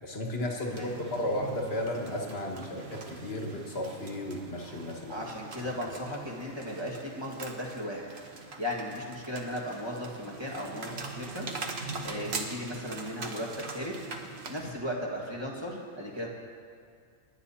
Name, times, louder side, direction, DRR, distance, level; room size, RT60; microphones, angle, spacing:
voice 1, 0.0-5.3 5.6-5.7, left 1 dB, 45° left, 0 dB, 1.7 m, -34 dB
voice 2, 0.6-1.0 5.1-8.1 8.6-11.5 12.0-13.9 14.5-16.3, equal, 20° right, -2 dB, 1.7 m, -36 dB
sound 1, 0.7-14.7, right 4 dB, 50° right, 1.2 m, -42 dB
28.5 x 9.6 x 2.8 m, 2.2 s
omnidirectional pair, 1.5 m